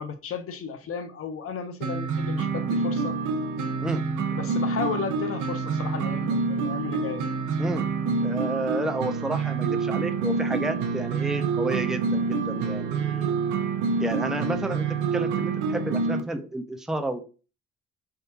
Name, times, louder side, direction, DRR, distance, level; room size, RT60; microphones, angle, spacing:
voice 1, 0.0-3.2 4.3-7.2, left 6 dB, 50° left, 0.6 m, -34 dB
sound 1, 1.8-16.2, right 4 dB, 75° right, 0.5 m, -27 dB
voice 2, 8.2-13.4 14.0-14.9 15.1-17.2, right 2 dB, ahead, 0.4 m, -31 dB
3.6 x 2.2 x 2.7 m
cardioid pair, 90°, 30 cm